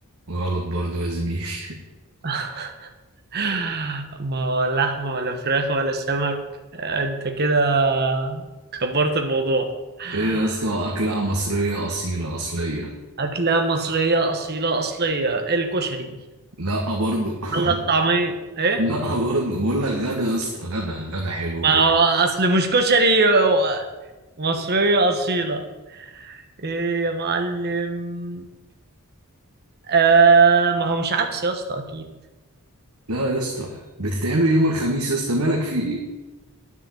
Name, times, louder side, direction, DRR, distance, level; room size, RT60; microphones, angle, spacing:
voice 1, 0.3-1.8 10.1-12.9 16.6-17.8 18.8-21.9 24.5-24.6 33.1-36.0, right 1 dB, 75° right, -1 dB, 1.7 m, -24 dB
voice 2, 2.2-2.9 3.3-6.4 6.7-8.4 8.7-9.7 10.0-10.5 13.2-16.2 17.5-18.8 21.6-23.8 24.4-25.7 25.9-28.4 29.9-32.0, right 3 dB, 45° right, 5 dB, 1.3 m, -21 dB
10.0 x 7.0 x 8.5 m, 1.1 s
head